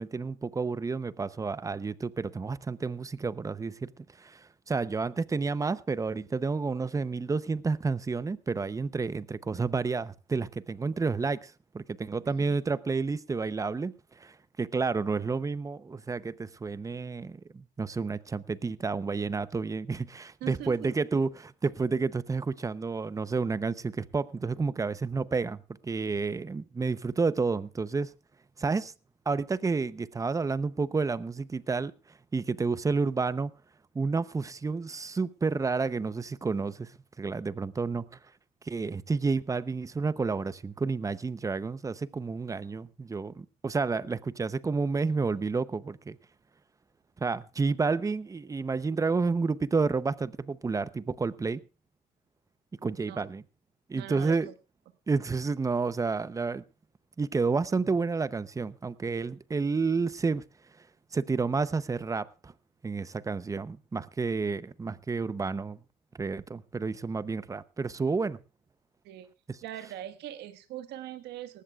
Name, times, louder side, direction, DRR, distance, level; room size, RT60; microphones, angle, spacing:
voice 1, 0.0-3.9 4.2-28.1 28.6-28.9 29.3-31.9 32.3-33.5 33.9-38.1 38.7-46.2 47.2-51.6 52.8-53.4 53.9-54.5 55.1-56.6 57.2-60.4 61.1-62.5 62.8-65.8 66.2-68.4 69.5-69.6, right 4 dB, 20° right, 0.7 m, -30 dB
voice 2, 12.2-12.6 20.4-20.9 53.1-53.2 53.9-54.5 69.0-69.3 69.6-71.6, right 12 dB, 85° right, 1.5 m, -41 dB
19.0 x 15.0 x 2.4 m
cardioid pair, 110°, 17 cm